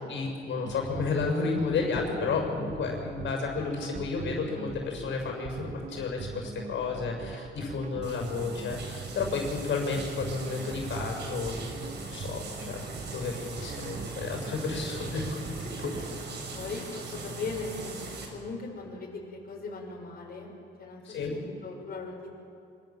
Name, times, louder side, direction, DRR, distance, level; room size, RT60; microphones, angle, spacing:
voice 1, 0.1-11.6 12.1-12.8 13.1-15.9 21.0-21.3, left 4 dB, 70° left, 2 dB, 6.8 m, -32 dB
sound 1, 0.6-16.1, right 6 dB, 40° right, 1.6 m, -42 dB
sound 2, 8.0-18.3, right 3 dB, 60° right, 6.2 m, -40 dB
voice 2, 16.5-20.5 20.8-22.1, left 3 dB, 50° left, -2 dB, 6.2 m, -39 dB
25.5 x 25.5 x 7.6 m, 2.5 s
cardioid pair, 90°, 20 cm